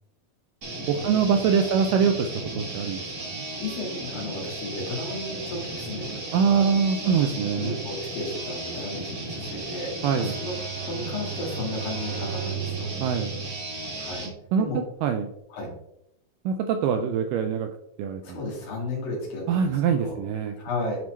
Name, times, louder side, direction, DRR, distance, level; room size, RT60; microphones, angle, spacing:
sound 1, 0.6-14.3, right 1 dB, 50° right, 1.0 m, -35 dB
voice 1, 0.9-3.5 6.3-7.8 10.0-10.4 13.0-13.3 14.5-14.7 15.0-15.3 16.5-17.7 18.0-18.4 19.5-20.6, right 7 dB, 85° right, 6 dB, 1.9 m, -24 dB
voice 2, 3.4-10.6 10.8-12.9 14.0-14.3 14.6-14.8 15.5-15.7 18.2-20.2 20.6-21.0, left 2 dB, 70° left, -3 dB, 3.6 m, -34 dB
Bowed string instrument, 10.0-14.4, right 9 dB, 30° left, 2.4 m, -36 dB
9.4 x 4.2 x 3.1 m, 0.78 s
omnidirectional pair, 4.3 m